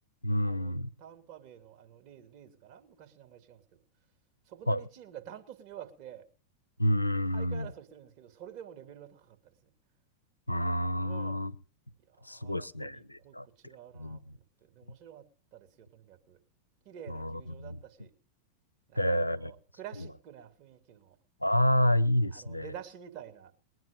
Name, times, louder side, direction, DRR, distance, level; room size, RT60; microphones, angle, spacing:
voice 1, 0.2-0.9 4.7-4.8 6.8-7.7 10.5-11.5 12.3-14.3 17.1-17.8 18.9-19.5 20.0-20.1 21.4-22.7, equal, 85° left, 14 dB, 0.6 m, -29 dB
voice 2, 1.0-3.8 4.5-6.3 7.3-9.6 11.0-11.5 12.1-15.3 15.5-16.4 16.8-18.1 18.9-21.2 22.3-23.5, right 9 dB, 45° right, 4 dB, 2.6 m, -49 dB
21.0 x 9.3 x 5.2 m, 0.40 s
figure-of-eight pair, 90°, 0 cm